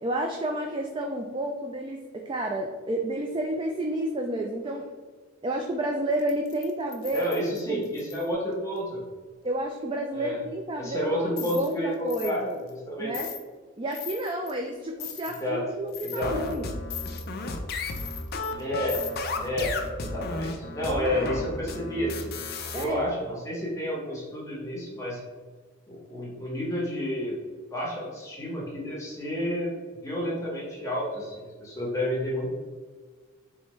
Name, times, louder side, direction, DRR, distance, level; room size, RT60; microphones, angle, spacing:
voice 1, 0.0-4.9 5.4-7.3 7.7-7.8 9.4-12.6 13.0-13.3 13.8-16.8 20.8-21.2 22.7-23.0, right 1 dB, 25° right, 2 dB, 0.3 m, -30 dB
sound 1, 6.2-8.3 11.4-11.7 12.1-12.4 12.7-12.8 13.1-13.4 13.9-14.5 15.0-15.4 15.9-16.6 16.9-17.3 17.9-18.6 18.9-19.1, left 9 dB, 85° left, 0.7 m, -39 dB
voice 2, 7.1-9.0 10.1-10.4 10.8-12.4 12.7-13.1 15.4-15.7 16.0-16.3 18.6-19.0 19.4-22.3 22.7-25.2 25.9-27.4 27.7-29.7 30.0-32.4, equal, 15° left, -5 dB, 1.1 m, -30 dB
sound 2, 16.2-22.8, left 3 dB, 50° left, 0.5 m, -33 dB
4.5 x 3.3 x 3.1 m, 1.4 s
head